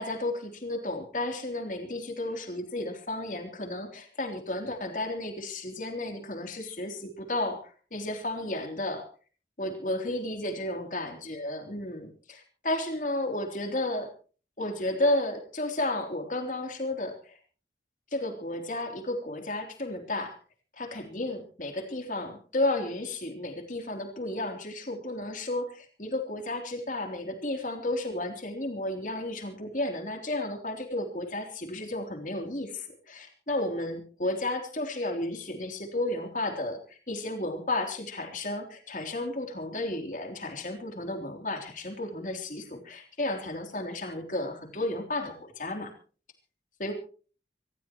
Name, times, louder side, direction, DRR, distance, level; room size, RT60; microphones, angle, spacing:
voice 1, 0.0-9.0 9.6-14.1 14.6-17.4 18.1-20.3 20.8-45.9 46.8-46.9, left 1 dB, 45° left, 4 dB, 3.4 m, -33 dB
25.5 x 14.5 x 3.1 m, 0.39 s
head